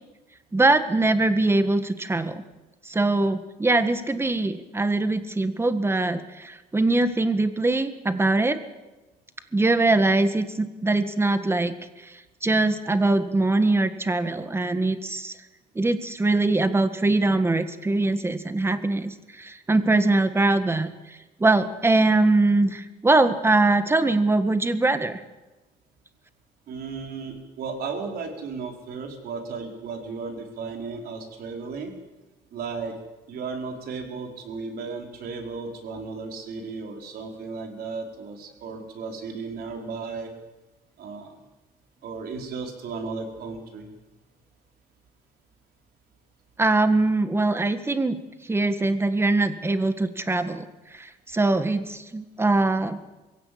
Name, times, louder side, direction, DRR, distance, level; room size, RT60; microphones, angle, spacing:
voice 1, 0.5-2.4 2.8-8.6 9.5-11.7 12.0-12.1 12.4-15.3 15.7-25.2 46.6-48.2 48.5-50.7 50.9-53.0, right 2 dB, 15° right, 10 dB, 1.7 m, -22 dB
voice 2, 26.7-31.9 32.5-32.9 33.3-40.3 41.0-41.4 42.0-43.9, right 4 dB, 65° right, 3 dB, 4.5 m, -35 dB
23.0 x 16.5 x 8.6 m, 1.1 s
cardioid pair, 110°, 17 cm